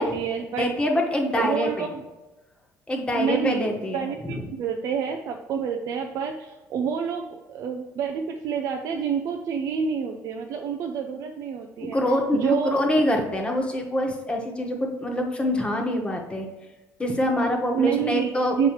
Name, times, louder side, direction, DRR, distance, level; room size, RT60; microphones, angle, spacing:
voice 1, 0.0-0.7 1.3-2.0 3.1-12.0 12.3-12.8 17.7-18.3 18.6-18.7, right 7 dB, 65° right, 3 dB, 0.6 m, -28 dB
voice 2, 0.6-1.9 2.9-4.3 11.8-16.5 17.0-18.5, left 1 dB, 15° left, 1 dB, 1.3 m, -25 dB
7.3 x 4.7 x 3.1 m, 1.1 s
cardioid pair, 110°, 6 cm